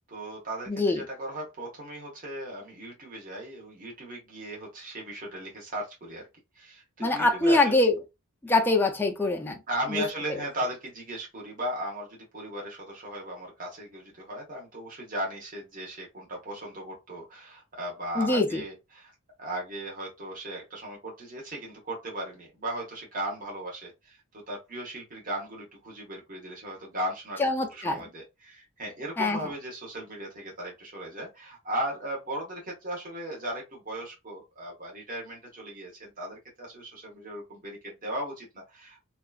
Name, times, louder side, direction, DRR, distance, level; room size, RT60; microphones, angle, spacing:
voice 1, 0.1-6.2 6.5-7.8 9.7-19.1 19.4-27.4 27.7-39.1, right 1 dB, 40° right, 1.1 m, -37 dB
voice 2, 0.7-1.0 7.0-8.0 8.4-9.6 9.9-10.0 18.2-18.6 27.4-28.0 29.2-29.4, left 2 dB, 10° left, 0.3 m, -24 dB
2.8 x 2.3 x 2.3 m
head